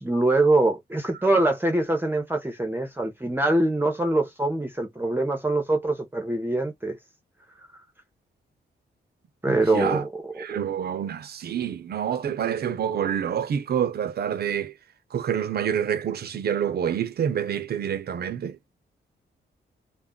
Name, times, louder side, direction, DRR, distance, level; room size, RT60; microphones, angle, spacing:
voice 1, 0.0-7.0 9.4-10.1 10.3-10.6, right 2 dB, 10° right, 0.7 m, -24 dB
voice 2, 9.4-10.0 10.4-14.8 15.1-18.6, right 8 dB, 60° right, 0.6 m, -27 dB
2.3 x 2.1 x 3.6 m
cardioid pair, 105°, 18 cm